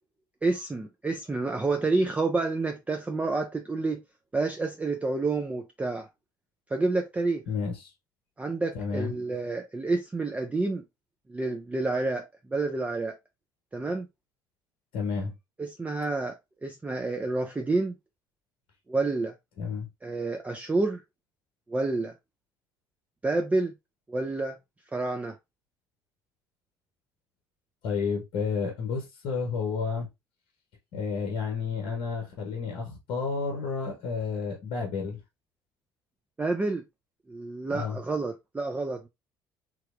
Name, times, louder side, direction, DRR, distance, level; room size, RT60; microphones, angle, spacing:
voice 1, 0.4-4.0 4.3-6.1 6.7-7.4 8.4-10.8 11.3-13.2 13.7-14.1 15.6-16.3 16.6-17.9 18.9-19.3 20.0-21.0 21.7-22.1 23.2-23.7 24.1-24.6 24.9-25.4 36.4-36.8 37.3-39.1, right 3 dB, 15° right, 0.5 m, -29 dB
voice 2, 7.5-7.9 8.7-9.2 14.9-15.3 19.6-19.9 27.8-30.1 30.9-35.2 37.7-38.0, left 5 dB, 55° left, 0.9 m, -31 dB
3.2 x 2.8 x 2.5 m
figure-of-eight pair, 55°, 11 cm